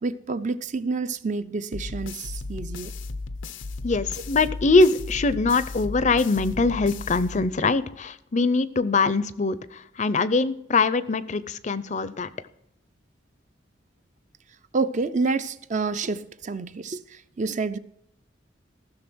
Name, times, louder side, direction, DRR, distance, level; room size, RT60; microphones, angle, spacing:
voice 1, 0.0-2.9 14.7-17.8, right 4 dB, 40° right, 0.5 m, -28 dB
sound 1, 1.7-7.8, left 3 dB, 85° left, 0.7 m, -35 dB
voice 2, 3.8-12.3, left 3 dB, 40° left, 0.5 m, -23 dB
15.5 x 6.4 x 6.2 m
head